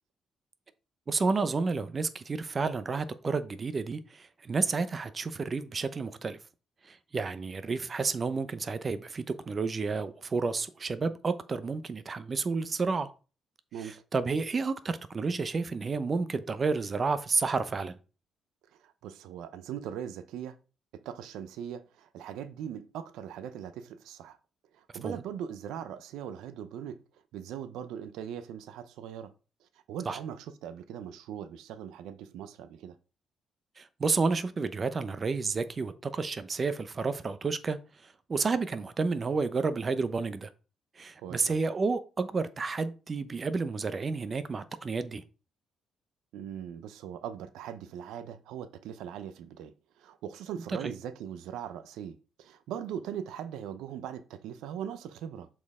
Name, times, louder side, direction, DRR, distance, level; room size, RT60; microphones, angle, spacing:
voice 1, 1.1-6.4 6.9-13.1 13.8-17.9 25.0-25.2 30.1-30.2 33.8-37.8 38.3-40.5 41.0-45.2 50.8-50.9, right 4 dB, 35° right, 0.7 m, -31 dB
voice 2, 18.7-20.6 21.0-24.4 24.7-27.0 27.3-29.3 29.6-33.0 41.2-41.6 46.3-55.5, right 9 dB, 90° right, 0.5 m, -40 dB
7.1 x 4.4 x 3.6 m
cardioid pair, 90°, 0 cm